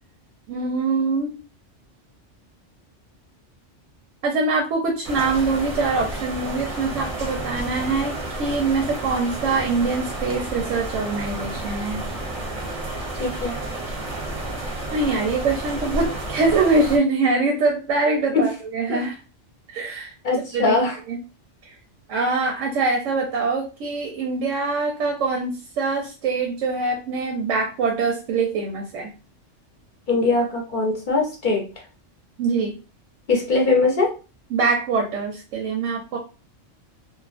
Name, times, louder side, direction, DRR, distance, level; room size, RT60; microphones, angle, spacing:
voice 1, 0.5-1.3 4.2-12.0 14.9-19.2 19.7-20.1 20.5-20.7 21.1-21.2 21.6-21.7 22.1-29.1 32.4-32.8 34.5-36.2, right 3 dB, 90° right, 1 dB, 0.9 m, -23 dB
sound 1, 5.0-17.0, right 2 dB, 40° right, 0.6 m, -31 dB
voice 2, 13.2-13.6 18.3-18.4 18.9-19.0 20.2-20.9 30.1-31.6 33.3-34.1, left 3 dB, 50° left, 0 dB, 0.7 m, -21 dB
2.5 x 2.4 x 2.4 m, 0.32 s
omnidirectional pair, 1.2 m